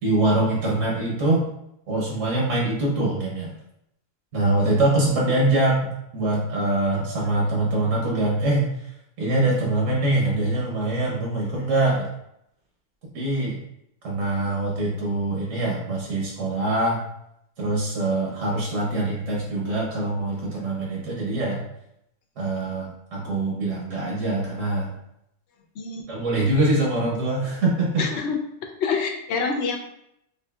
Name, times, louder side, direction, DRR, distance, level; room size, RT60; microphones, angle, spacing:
voice 1, 0.0-1.5 1.9-3.5 4.3-8.9 9.2-12.1 13.1-13.6 14.0-17.0 17.6-21.6 22.4-24.9 26.1-28.0, right 2 dB, 85° right, -3 dB, 1.2 m, -24 dB
voice 2, 25.7-26.1 28.0-28.4 28.8-29.8, left 5 dB, 70° left, 3 dB, 0.8 m, -26 dB
4.8 x 2.7 x 2.3 m, 0.78 s
omnidirectional pair, 1.3 m